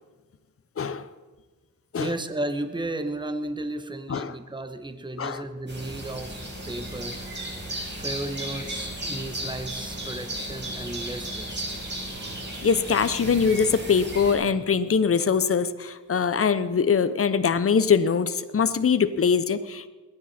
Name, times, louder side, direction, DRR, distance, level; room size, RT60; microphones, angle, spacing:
voice 1, 0.8-1.1 1.9-2.1 4.1-4.4 5.2-5.4 12.6-19.9, left 6 dB, 45° left, 12 dB, 0.9 m, -23 dB
voice 2, 2.0-6.4 6.7-7.2 7.9-11.6, right 1 dB, 15° right, 9 dB, 1.2 m, -34 dB
sound 1, 5.7-14.3, right 1 dB, 35° right, 4.9 m, -35 dB
21.0 x 10.0 x 4.3 m, 1.3 s
cardioid pair, 60°, 31 cm